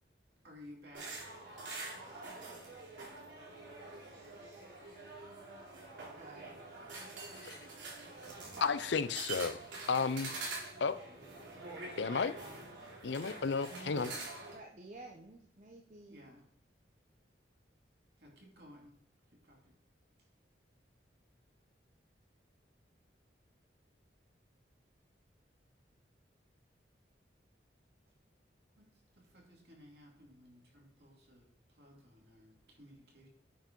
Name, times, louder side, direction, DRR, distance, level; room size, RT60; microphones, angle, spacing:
voice 1, 0.4-1.2 6.4-7.4 8.4-8.5 9.7-10.0 10.9-11.7 13.7-14.5 16.1-16.4 18.2-18.9 19.4-19.8 28.7-28.9 29.1-33.3, equal, 60° right, -1 dB, 2.8 m, -57 dB
sound 1, 0.9-14.5, right 3 dB, 85° right, 3.6 m, -46 dB
voice 2, 6.2-6.6 14.5-16.3, right 2 dB, 40° right, 0 dB, 0.8 m, -52 dB
voice 3, 8.6-10.5 10.8-11.0 12.0-12.3 13.0-14.1, left 5 dB, 75° left, 14 dB, 0.5 m, -33 dB
9.0 x 5.0 x 5.3 m, 0.68 s
head